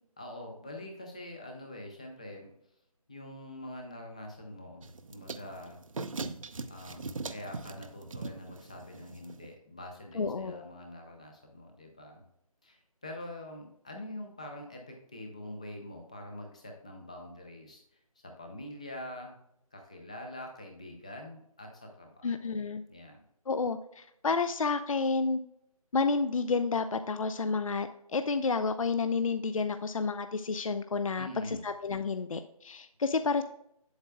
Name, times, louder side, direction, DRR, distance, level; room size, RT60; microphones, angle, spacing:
voice 1, 0.2-2.5 3.1-5.8 6.7-12.2 12.6-19.4 19.7-22.6 22.9-23.2 31.2-31.7 33.4-33.5, left 1 dB, 10° left, 2 dB, 0.5 m, -45 dB
sound 1, 4.8-9.5, right 3 dB, 60° right, 0.6 m, -41 dB
voice 2, 10.1-10.7 22.2-22.8 23.5-25.4 25.9-31.3 31.6-33.4, left 4 dB, 60° left, 10 dB, 0.5 m, -30 dB
8.0 x 7.9 x 2.2 m, 0.75 s
figure-of-eight pair, 160°, 19 cm